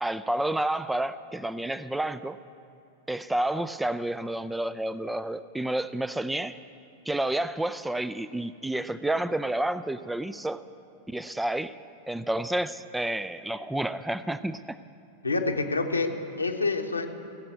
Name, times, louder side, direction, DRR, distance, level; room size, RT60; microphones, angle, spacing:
voice 1, 0.0-2.4 3.1-6.6 7.1-10.6 11.1-11.7 12.1-14.8, right 1 dB, 5° right, 14 dB, 0.4 m, -30 dB
voice 2, 15.2-17.1, left 3 dB, 80° left, 4 dB, 1.1 m, -27 dB
17.0 x 7.7 x 9.4 m, 2.6 s
figure-of-eight pair, 90°, 0 cm